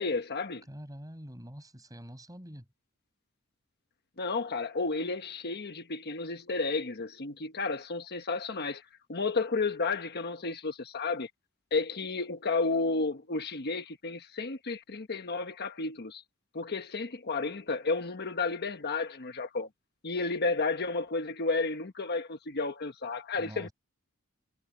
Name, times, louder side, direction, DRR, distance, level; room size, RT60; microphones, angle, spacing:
voice 1, 0.0-0.6 4.2-11.3 11.7-16.2 16.5-19.7 20.0-23.7, left 3 dB, 50° left, 1.2 m, -32 dB
voice 2, 0.7-2.7 23.4-23.7, equal, 15° right, 6.9 m, -45 dB
head